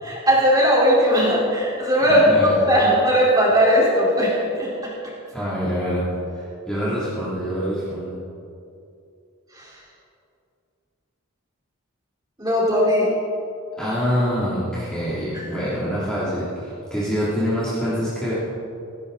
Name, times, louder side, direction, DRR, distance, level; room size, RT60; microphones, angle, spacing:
voice 1, 0.0-4.7 9.5-9.7 12.4-13.1 15.3-15.6, equal, 15° right, -5 dB, 4.4 m, -18 dB
voice 2, 2.0-2.6 5.3-8.2 13.8-18.3, equal, 5° left, -11 dB, 3.1 m, -25 dB
18.0 x 17.0 x 4.1 m, 2.5 s
head